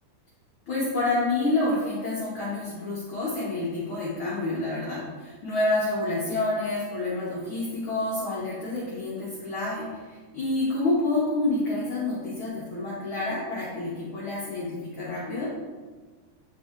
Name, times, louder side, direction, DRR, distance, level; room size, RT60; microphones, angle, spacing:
voice 1, 0.7-15.5, left 2 dB, 60° left, -7 dB, 1.4 m, -28 dB
8.2 x 3.4 x 3.6 m, 1.4 s
omnidirectional pair, 3.8 m